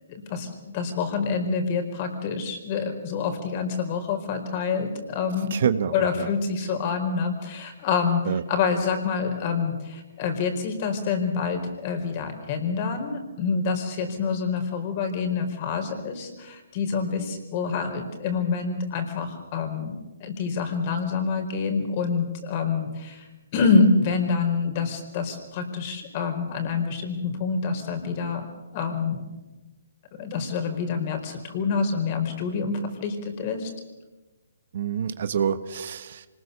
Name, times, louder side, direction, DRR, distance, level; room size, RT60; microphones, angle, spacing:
voice 1, 0.1-5.5 5.9-19.9 20.2-28.5 28.7-29.2 30.2-33.7, left 5 dB, 40° left, 6 dB, 4.5 m, -27 dB
voice 2, 5.5-6.3 8.3-8.4 34.7-36.3, right 8 dB, 55° right, 13 dB, 1.2 m, -27 dB
25.5 x 20.0 x 6.9 m, 1.1 s
hypercardioid pair, 140°, 0 cm